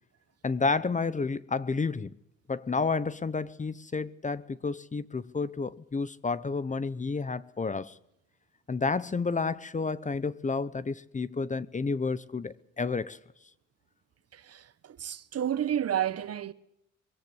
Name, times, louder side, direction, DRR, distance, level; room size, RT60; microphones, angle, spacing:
voice 1, 0.4-2.1 2.5-8.0 8.7-13.2, left 4 dB, 25° left, 0.9 m, -30 dB
voice 2, 14.3-16.5, right 10 dB, 55° right, 1.2 m, -31 dB
22.5 x 17.0 x 8.1 m
cardioid pair, 90°, 30 cm